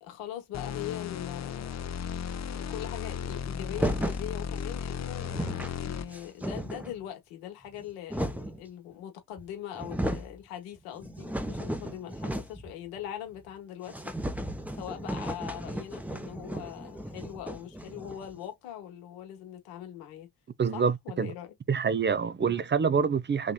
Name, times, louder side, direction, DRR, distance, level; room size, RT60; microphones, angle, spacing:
voice 1, 0.0-1.9 2.5-14.1 14.7-20.3 20.7-21.5 22.4-22.5, left 11 dB, 85° left, 1.1 m, -41 dB
sound 1, 0.5-6.3, left 7 dB, 35° left, 0.6 m, -35 dB
sound 2, 3.7-4.3 4.9-5.0 5.2-5.8 6.1-7.0 7.7-8.6 9.4-9.5 9.7-10.3 10.8-12.7 13.0-13.1 13.4-13.5 13.9-18.4, right 1 dB, 5° right, 0.8 m, -35 dB
voice 2, 20.6-21.3 21.7-23.5, right 6 dB, 25° right, 0.5 m, -26 dB
4.2 x 2.9 x 2.2 m
hypercardioid pair, 45°, 47 cm